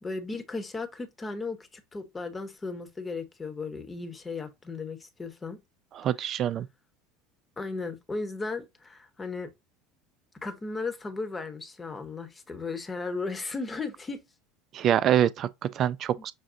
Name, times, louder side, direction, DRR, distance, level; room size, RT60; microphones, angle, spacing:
voice 1, 0.0-5.6 7.6-9.5 10.4-14.2 16.2-16.3, left 3 dB, 20° left, 1.0 m, -35 dB
voice 2, 6.0-6.7 14.7-16.3, right 10 dB, 45° right, 0.3 m, -25 dB
6.1 x 2.3 x 2.5 m
hypercardioid pair, 75°, 0 cm